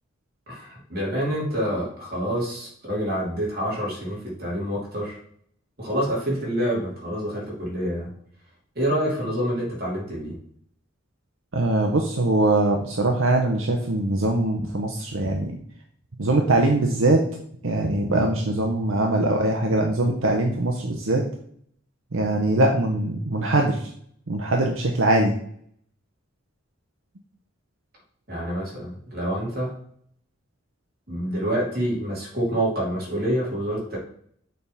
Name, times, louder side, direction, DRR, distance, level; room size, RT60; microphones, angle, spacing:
voice 1, 0.5-5.2 5.8-8.1 8.7-10.4 28.3-29.7 31.1-34.0, equal, 45° right, -4 dB, 2.7 m, -27 dB
voice 2, 11.5-15.6 16.2-17.2 17.6-21.2 22.1-23.8 24.3-25.3, right 2 dB, 75° right, 2 dB, 0.8 m, -22 dB
6.8 x 3.5 x 5.5 m, 0.64 s
head